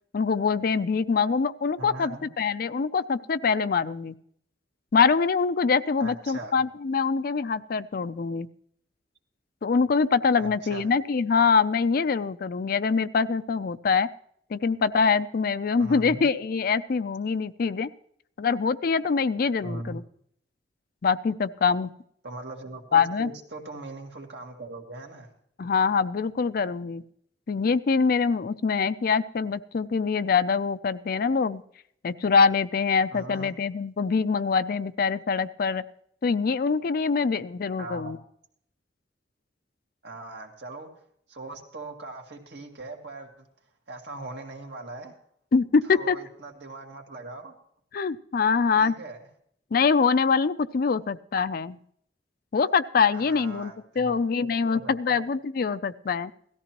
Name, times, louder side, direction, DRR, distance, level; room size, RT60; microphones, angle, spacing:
voice 1, 0.1-4.1 4.9-8.5 9.6-14.1 14.5-17.9 18.4-20.0 21.0-21.9 22.9-23.3 25.6-27.0 27.5-31.6 32.0-35.8 36.2-38.2 45.5-46.2 47.9-49.0 49.7-51.8 52.5-56.3, left 5 dB, 55° left, 14 dB, 0.4 m, -24 dB
voice 2, 1.8-2.3 6.0-6.6 10.4-10.9 15.8-16.2 19.6-19.9 22.2-25.3 33.1-33.6 37.8-38.2 40.0-40.9 41.3-43.5 43.9-45.1 45.8-47.5 48.7-49.2 53.1-55.2, right 2 dB, 70° right, 1 dB, 2.2 m, -40 dB
17.5 x 14.0 x 3.0 m, 0.68 s
head